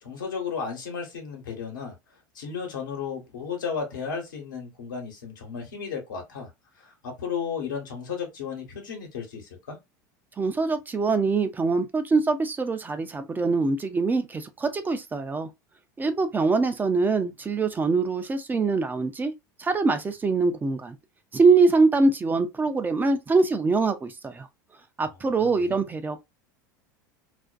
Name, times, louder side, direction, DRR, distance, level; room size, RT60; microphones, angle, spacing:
voice 1, 0.0-1.9 2.3-6.5 6.8-9.8 25.3-25.8, left 6 dB, 85° left, 1.0 m, -34 dB
voice 2, 10.4-15.5 16.0-19.3 19.6-20.9 21.3-24.5 25.0-26.2, right 4 dB, 20° right, 0.4 m, -23 dB
2.4 x 2.1 x 2.4 m
hypercardioid pair, 95°, 10 cm